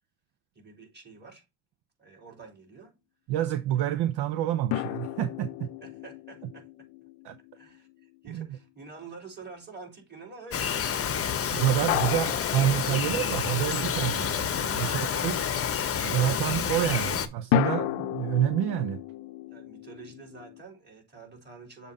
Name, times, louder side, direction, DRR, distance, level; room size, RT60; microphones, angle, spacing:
voice 1, 0.6-1.4 2.0-3.0 5.8-6.7 7.5-12.0 14.8-15.5 17.0-17.2 19.5-21.9, right 4 dB, 25° right, 3.4 m, -48 dB
voice 2, 3.3-5.7 7.2-7.4 8.3-8.5 11.5-15.4 16.0-19.0, right 12 dB, 65° right, 0.7 m, -28 dB
sound 1, 4.7-8.1 11.9-13.9 17.5-20.6, left 14 dB, 75° left, 0.7 m, -33 dB
Bird vocalization bird call bird song, 10.5-17.3, left 8 dB, 35° left, 0.8 m, -29 dB
7.0 x 2.6 x 5.2 m
supercardioid pair, 80°, 43 cm